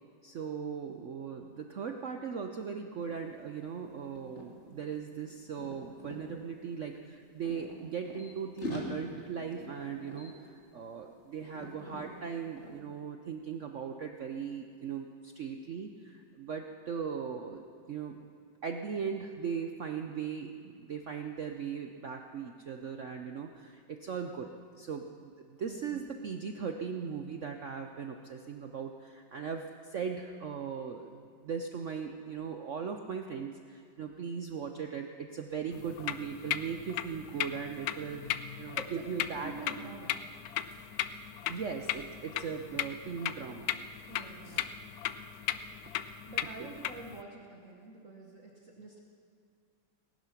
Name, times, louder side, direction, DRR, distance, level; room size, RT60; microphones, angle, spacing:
voice 1, 0.2-18.2 18.6-24.5 24.8-38.2 38.6-39.5 41.5-43.7 44.4-44.7 46.6-46.7, right 6 dB, 75° right, 4 dB, 0.7 m, -39 dB
sound 1, 3.0-3.2 3.4-6.2 7.0-8.3 8.6-11.1 11.4-12.1 12.6-12.8, equal, 35° left, 2.4 m, -43 dB
voice 2, 25.7-26.1 38.1-38.3 38.7-40.2 44.1-44.7 46.3-49.0, right 3 dB, 45° right, 0 dB, 1.4 m, -47 dB
sound 2, 35.7-47.2, left 11 dB, 80° left, 0.8 m, -37 dB
18.5 x 11.5 x 5.8 m, 2.3 s
omnidirectional pair, 2.2 m